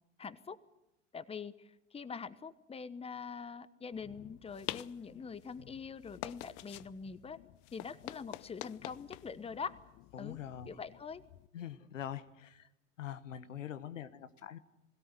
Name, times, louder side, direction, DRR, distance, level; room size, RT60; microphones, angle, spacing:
voice 1, 0.2-0.6 1.1-7.4 7.7-9.7 10.2-10.4 10.7-11.2, left 5 dB, 15° left, 16 dB, 1.1 m, -44 dB
sound 1, 3.9-11.5, left 18 dB, 55° left, 0.8 m, -48 dB
voice 2, 10.1-10.7 11.5-12.7 13.0-14.6, left 10 dB, 80° left, 13 dB, 1.3 m, -44 dB
22.0 x 17.0 x 9.9 m, 0.86 s
hypercardioid pair, 85°, 37 cm